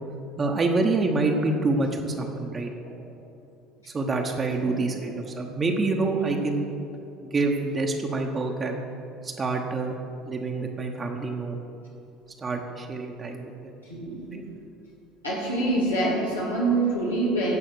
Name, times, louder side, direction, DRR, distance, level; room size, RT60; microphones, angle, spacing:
voice 1, 0.4-2.7 3.9-6.7 7.2-8.8 9.2-10.0 10.3-11.6 12.4-13.5 14.3-14.4, right 3 dB, 30° right, 2 dB, 1.2 m, -26 dB
voice 2, 13.9-14.4 15.2-17.6, right 2 dB, 85° left, -6 dB, 2.3 m, -25 dB
16.0 x 5.6 x 6.4 m, 2.8 s
figure-of-eight pair, 65°, 0 cm